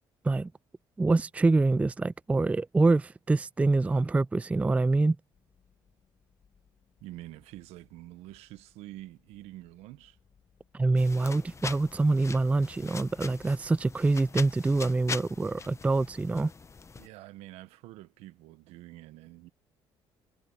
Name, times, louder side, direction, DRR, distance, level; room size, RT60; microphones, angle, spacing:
voice 1, 1.0-5.2 10.7-16.5, right 3 dB, 15° right, 0.3 m, -25 dB
sound 1, 5.3-15.0, left 7 dB, 45° left, 7.7 m, -67 dB
voice 2, 7.0-10.2 17.0-19.5, right 16 dB, 80° right, 1.3 m, -47 dB
sound 2, 11.0-17.1, left 4 dB, 25° left, 1.0 m, -42 dB
supercardioid pair, 80°, 11 cm